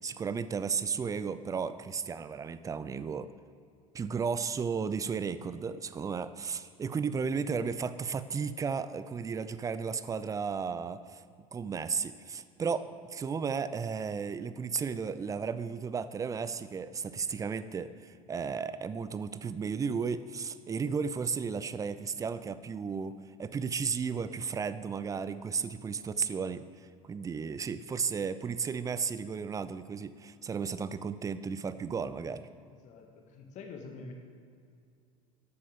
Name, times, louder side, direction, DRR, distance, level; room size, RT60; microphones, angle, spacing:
voice 1, 0.0-3.3 3.9-11.2 11.5-23.1 23.4-32.5, right 6 dB, 20° right, 13 dB, 0.5 m, -34 dB
voice 2, 32.8-34.1, left 4 dB, 40° left, 2 dB, 1.8 m, -46 dB
12.5 x 8.5 x 5.1 m, 2.3 s
figure-of-eight pair, 70°, 18 cm